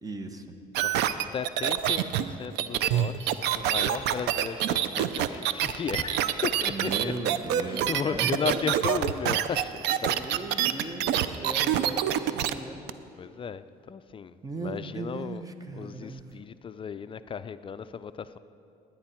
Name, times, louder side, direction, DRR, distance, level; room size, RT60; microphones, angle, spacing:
voice 1, 0.0-0.5 6.6-8.7 10.1-12.8 14.4-16.3, right 2 dB, 20° right, 7 dB, 1.0 m, -37 dB
sound 1, 0.7-12.5 12.9-13.0, right 11 dB, 85° right, 0.5 m, -26 dB
voice 2, 0.8-7.1 7.7-10.2 10.5-11.0 13.2-15.4 15.8-18.4, left 7 dB, 30° left, 13 dB, 0.4 m, -35 dB
19.5 x 9.5 x 4.4 m, 2.7 s
cardioid pair, 110°, 17 cm